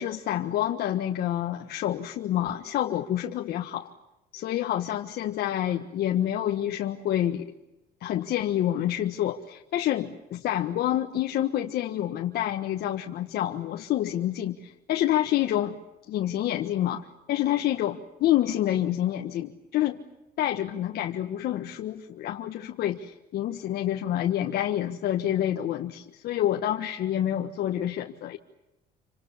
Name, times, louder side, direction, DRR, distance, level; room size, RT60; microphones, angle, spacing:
voice 1, 0.0-3.9 4.3-7.5 8.0-15.7 16.1-20.0 20.4-28.4, left 12 dB, 70° left, 3 dB, 1.5 m, -28 dB
28.0 x 25.5 x 7.3 m, 0.95 s
cardioid pair, 110°, 17 cm